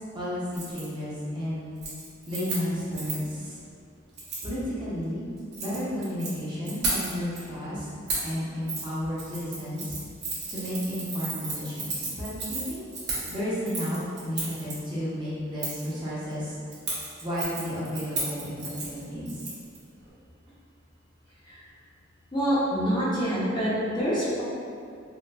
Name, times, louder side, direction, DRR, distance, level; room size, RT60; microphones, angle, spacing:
voice 1, 0.1-1.8 2.3-3.6 4.4-5.3 5.6-7.9 8.2-10.0 10.5-12.8 13.3-16.5 17.2-19.3, equal, 25° right, -10 dB, 0.8 m, -32 dB
Keys jangling, 0.5-0.8 1.2-1.5 1.8-3.3 4.2-4.5 5.4-6.3 6.6-7.4 8.1-8.3 8.7-8.9 9.2-14.7 15.6-15.9 16.7-19.8 20.1-20.2, right 3 dB, 60° right, 0.9 m, -34 dB
voice 2, 22.3-24.4, equal, 25° left, -9 dB, 0.6 m, -26 dB
3.7 x 2.5 x 2.2 m, 2.4 s
head